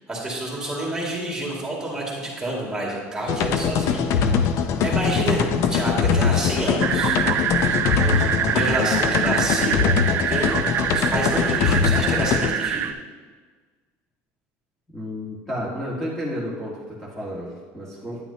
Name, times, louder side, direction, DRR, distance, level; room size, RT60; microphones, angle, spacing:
voice 1, 0.1-4.4 4.8-5.4 5.7-7.2 7.9-9.9 10.3-10.6 10.9-12.8, right 1 dB, 10° right, -3 dB, 2.2 m, -28 dB
sound 1, 3.3-12.5, left 6 dB, 55° left, 0.6 m, -22 dB
sound 2, 6.8-12.9, right 9 dB, 40° right, 0.4 m, -25 dB
voice 2, 14.9-18.2, equal, 10° left, -7 dB, 1.7 m, -31 dB
9.6 x 9.1 x 2.8 m, 1.5 s
cardioid pair, 130°, 6 cm